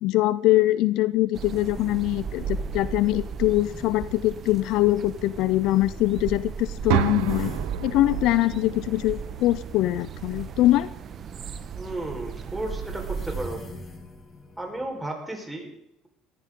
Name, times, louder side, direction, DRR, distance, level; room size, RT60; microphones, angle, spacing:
voice 1, 0.0-7.5 7.8-10.9, left 16 dB, 70° left, 17 dB, 0.5 m, -23 dB
sound 1, 1.2-1.3 1.8-1.9 2.5-5.0 7.0-9.3 11.5-11.6 12.6-14.9, left 1 dB, 30° left, 2.8 m, -44 dB
sound 2, 1.3-13.5, right 6 dB, 45° right, 1.2 m, -36 dB
sound 3, 6.9-10.9, right 15 dB, 85° right, 0.7 m, -31 dB
voice 2, 11.7-13.6 14.6-15.8, right 1 dB, 10° right, 1 dB, 4.5 m, -33 dB
19.5 x 15.0 x 3.8 m, 0.78 s
supercardioid pair, 100°, 0 cm